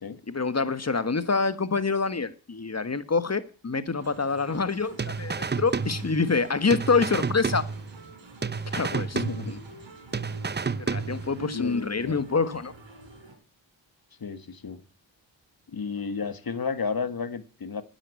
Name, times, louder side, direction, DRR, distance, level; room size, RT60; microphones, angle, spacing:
voice 1, 0.3-7.7 8.7-9.6 10.8-12.7, left 4 dB, 35° left, 13 dB, 1.5 m, -26 dB
sound 1, 4.0-13.3, right 2 dB, 70° right, 5.5 m, -47 dB
sound 2, 5.0-6.4 6.7-8.1 8.4-9.8 10.1-11.5, right 5 dB, 20° right, 0.6 m, -31 dB
voice 2, 9.1-9.6 11.5-12.2 14.2-14.8 15.7-17.8, left 5 dB, 50° left, 12 dB, 1.7 m, -32 dB
10.0 x 9.9 x 8.4 m, 0.39 s
cardioid pair, 55°, 47 cm